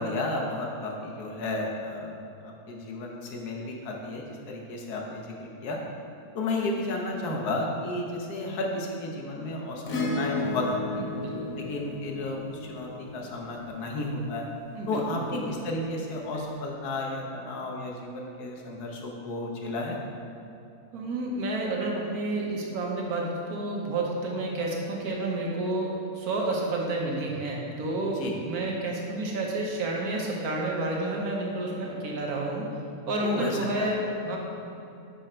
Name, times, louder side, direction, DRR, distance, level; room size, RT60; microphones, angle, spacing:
voice 1, 0.0-2.1 2.4-5.8 6.3-11.0 11.6-14.5 14.9-20.0 28.1-28.3 33.2-33.9, left 2 dB, 85° left, 0 dB, 1.4 m, -33 dB
Acoustic guitar / Strum, 9.9-14.5 16.3-16.4, left 2 dB, 70° left, 1.2 m, -34 dB
voice 2, 10.9-11.5 14.7-15.5 20.9-32.7 33.1-34.4, right 2 dB, 75° right, -1 dB, 1.3 m, -30 dB
5.5 x 4.3 x 5.0 m, 2.8 s
omnidirectional pair, 1.6 m